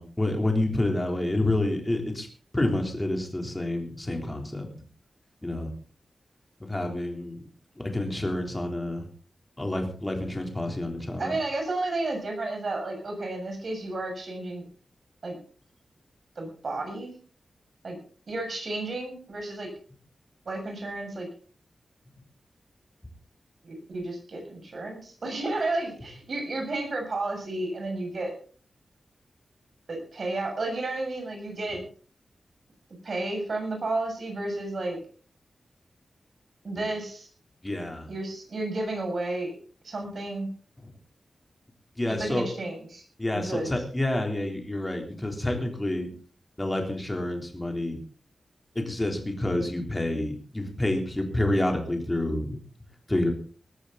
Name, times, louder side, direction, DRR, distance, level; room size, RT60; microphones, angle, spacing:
voice 1, 0.0-2.3 2.5-4.7 5.4-5.7 6.7-7.4 7.8-9.0 9.6-11.3 36.7-36.9 37.6-38.1 42.0-42.5 43.2-46.1 46.6-48.0 48.8-52.6 53.1-53.3, left 1 dB, 15° left, 3 dB, 3.7 m, -28 dB
voice 2, 11.2-14.6 15.2-15.4 16.4-17.2 17.8-18.0 18.3-19.7 20.5-21.3 23.6-28.3 29.9-31.8 33.0-35.0 36.6-37.3 38.1-39.6 39.8-40.5 42.1-43.0 43.3-43.7, right 2 dB, 50° right, 3 dB, 7.0 m, -32 dB
19.5 x 13.5 x 4.1 m, 0.40 s
wide cardioid pair, 155°, 0 cm